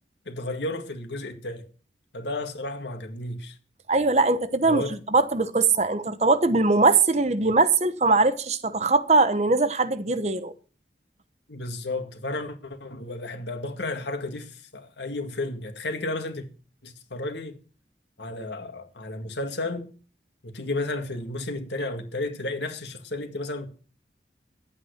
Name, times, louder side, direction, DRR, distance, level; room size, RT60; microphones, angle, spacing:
voice 1, 0.3-1.7 2.1-3.6 4.6-5.0 11.5-16.5 16.8-17.6 18.2-19.9 20.4-23.7, left 2 dB, 80° left, 2.1 m, -32 dB
voice 2, 3.9-4.8 5.1-10.5, right 3 dB, 40° right, 0.9 m, -21 dB
11.0 x 8.8 x 6.5 m
head